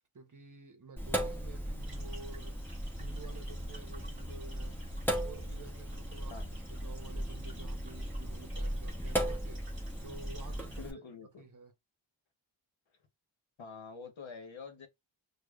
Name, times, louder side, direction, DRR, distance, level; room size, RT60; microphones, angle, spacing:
voice 1, 0.1-2.6 3.0-4.8 5.1-9.7 10.0-11.0 11.4-11.7, right 4 dB, 40° right, 0.9 m, -50 dB
Sink (filling or washing), 1.0-10.9, equal, 5° left, 0.9 m, -37 dB
sound 1, 1.8-10.9, right 1 dB, 25° right, 1.8 m, -56 dB
voice 2, 10.8-11.5 13.6-14.9, left 5 dB, 70° left, 1.0 m, -46 dB
4.8 x 2.3 x 2.3 m
wide cardioid pair, 85°, 48 cm